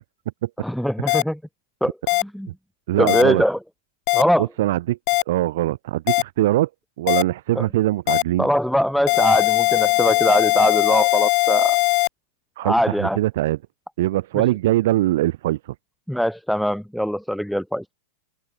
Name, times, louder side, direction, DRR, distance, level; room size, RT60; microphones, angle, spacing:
voice 1, 0.6-1.4 1.8-1.9 2.2-2.5 3.0-3.6 4.1-4.5 7.5-7.7 8.4-11.8 12.6-13.2 16.1-17.8, equal, ahead, 0.7 m, -21 dB
sound 1, 1.1-1.2 2.1-2.2 3.1-3.2 4.1-4.2 5.1-5.2 6.1-6.2 7.1-7.2 8.1-8.2 9.1-12.1, left 28 dB, 45° left, 0.5 m, -19 dB
voice 2, 2.9-3.4 4.4-5.0 5.3-6.7 7.0-8.5 12.6-13.6 14.0-15.7, right 15 dB, 65° right, 0.5 m, -22 dB
supercardioid pair, 145°, 0 cm